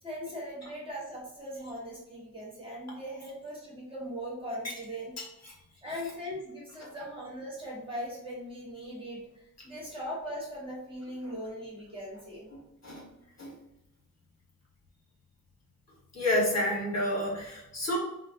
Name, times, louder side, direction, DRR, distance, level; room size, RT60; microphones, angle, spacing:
voice 1, 0.0-5.1 5.8-9.2 9.6-12.5, equal, 15° right, -6 dB, 1.2 m, -39 dB
voice 2, 16.1-18.0, left 1 dB, 50° left, -4 dB, 1.1 m, -29 dB
4.7 x 2.0 x 2.5 m, 0.85 s
wide cardioid pair, 135°, 34 cm